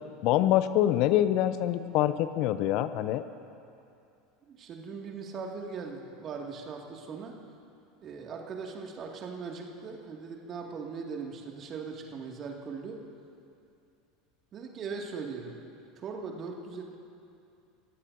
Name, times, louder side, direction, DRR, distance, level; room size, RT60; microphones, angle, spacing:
voice 1, 0.2-3.2, left 12 dB, 55° left, 12 dB, 0.6 m, -25 dB
voice 2, 4.5-7.4 8.0-13.0 14.5-15.6 16.0-17.0, right 5 dB, 40° right, 1 dB, 2.2 m, -39 dB
28.5 x 15.5 x 2.7 m, 2.6 s
figure-of-eight pair, 75°, 0 cm